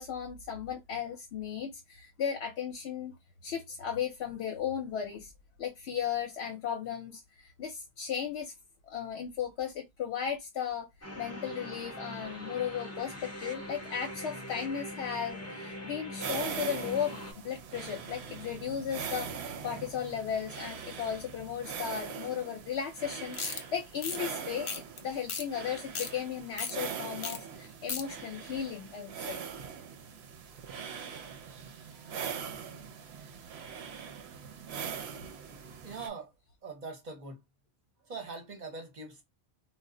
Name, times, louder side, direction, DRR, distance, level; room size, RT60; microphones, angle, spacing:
voice 1, 0.0-3.2 3.4-5.3 5.6-8.5 8.9-10.9 11.2-24.7 25.0-29.4, left 8 dB, 75° left, 0.9 m, -36 dB
sound 1, 11.0-17.3, equal, 15° left, 0.6 m, -42 dB
sound 2, 16.2-36.1, right 7 dB, 75° right, 0.8 m, -42 dB
sound 3, 23.3-23.6 24.0-24.2 24.7-25.0 25.3-25.4 25.8-26.1 26.6-26.7 27.2-27.4 27.6-28.0, left 5 dB, 55° left, 0.3 m, -35 dB
voice 2, 35.8-36.3 36.6-37.4 38.0-39.2, right 4 dB, 45° right, 0.8 m, -42 dB
2.2 x 2.0 x 3.6 m
omnidirectional pair, 1.1 m